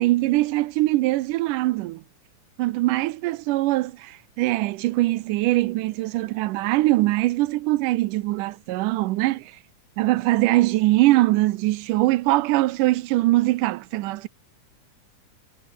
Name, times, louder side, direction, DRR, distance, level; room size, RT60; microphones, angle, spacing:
voice 1, 0.0-2.0 2.6-9.5 10.0-14.3, right 18 dB, 90° right, 2.3 m, -22 dB
omnidirectional pair, 3.6 m